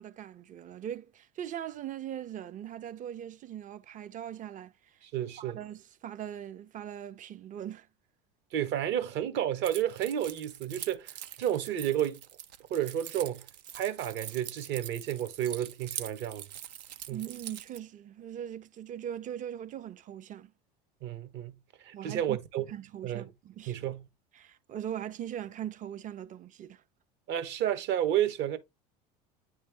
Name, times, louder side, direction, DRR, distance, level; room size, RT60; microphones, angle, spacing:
voice 1, 0.0-5.0 5.4-7.9 17.1-20.5 21.9-22.4 22.7-23.8 24.3-26.8, right 10 dB, 40° right, 0.6 m, -40 dB
voice 2, 5.1-5.6 8.5-11.1 11.4-12.2 12.7-13.5 13.7-16.5 17.1-17.2 21.0-21.6 21.8-22.6 23.0-23.3 23.7-24.0 27.3-28.6, right 11 dB, 60° right, 1.1 m, -31 dB
Keys jangling, 9.6-17.8, right 11 dB, 85° right, 0.7 m, -44 dB
8.8 x 3.2 x 3.4 m
hypercardioid pair, 90°, 21 cm